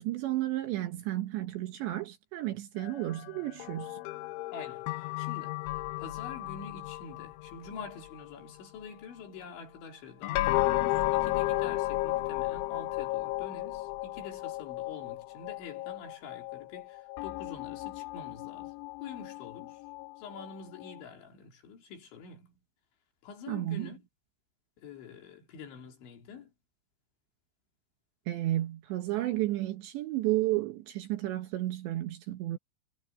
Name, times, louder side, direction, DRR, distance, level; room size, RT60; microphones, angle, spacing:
voice 1, 0.0-4.0 23.5-23.9 28.3-32.6, right 15 dB, 70° right, 3.0 m, -32 dB
sound 1, 2.8-8.4 10.2-21.0, left 18 dB, 85° left, 2.7 m, -34 dB
voice 2, 4.5-18.7 19.0-19.8 20.2-22.5 23.2-24.1 24.8-26.5, left 5 dB, 65° left, 5.4 m, -46 dB
omnidirectional pair, 6.0 m